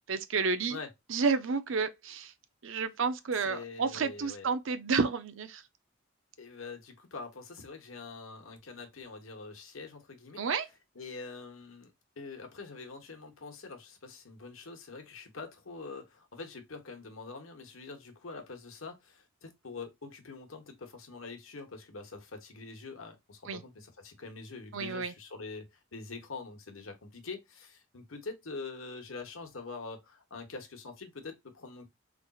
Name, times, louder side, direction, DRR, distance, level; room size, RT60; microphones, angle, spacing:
voice 1, 0.1-0.8 1.1-2.3 2.6-5.6 10.4-10.7 23.5-23.6 24.7-25.1, right 5 dB, 70° right, 0.6 m, -30 dB
voice 2, 3.4-4.5 6.4-10.4 10.9-31.9, left 4 dB, 80° left, 1.1 m, -45 dB
4.1 x 3.3 x 2.3 m
head